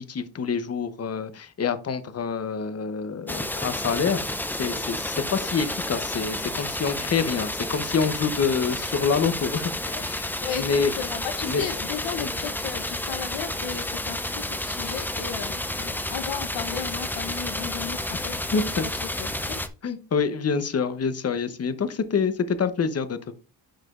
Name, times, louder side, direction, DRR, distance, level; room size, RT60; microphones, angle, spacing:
voice 1, 0.0-9.7 10.0-10.3 10.6-10.9 11.4-11.6 12.2-12.3 15.8-15.9 18.5-18.8 19.8-23.4, left 5 dB, 35° left, 12 dB, 0.8 m, -27 dB
sound 1, 3.3-19.7, left 1 dB, 5° left, 0.4 m, -31 dB
voice 2, 10.9-19.6, left 8 dB, 80° left, 7 dB, 0.9 m, -35 dB
10.0 x 4.9 x 2.4 m, 0.33 s
cardioid pair, 100°, 45 cm